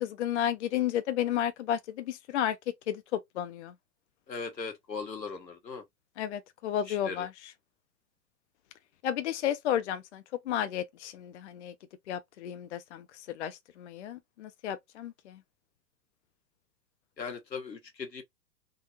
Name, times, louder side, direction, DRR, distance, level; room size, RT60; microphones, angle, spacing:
voice 1, 0.0-2.6 2.9-3.7 6.2-7.3 9.0-11.7 12.1-13.0 13.3-15.4, left 10 dB, 45° left, 0.5 m, -32 dB
voice 2, 4.3-5.8 6.9-7.3 17.2-18.2, left 4 dB, 85° left, 1.3 m, -38 dB
3.8 x 2.5 x 2.7 m
figure-of-eight pair, 115°, 49 cm